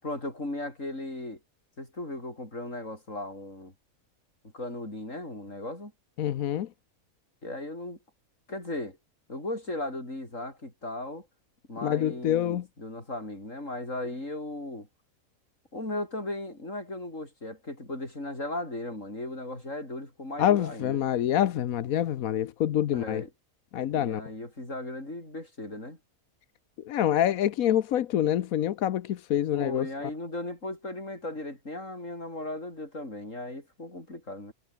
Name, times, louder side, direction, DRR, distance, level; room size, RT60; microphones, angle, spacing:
voice 1, 0.0-1.4 1.8-3.7 4.5-5.9 7.4-8.0 8.5-9.0 9.3-11.3 11.7-14.9 15.7-21.0 22.9-23.3 23.9-26.0 29.5-34.5, left 1 dB, 65° left, 7.7 m, -37 dB
voice 2, 6.2-6.7 11.8-12.7 20.4-23.2 23.7-24.2 26.8-30.1, left 11 dB, 90° left, 1.3 m, -26 dB
omnidirectional pair, 1.5 m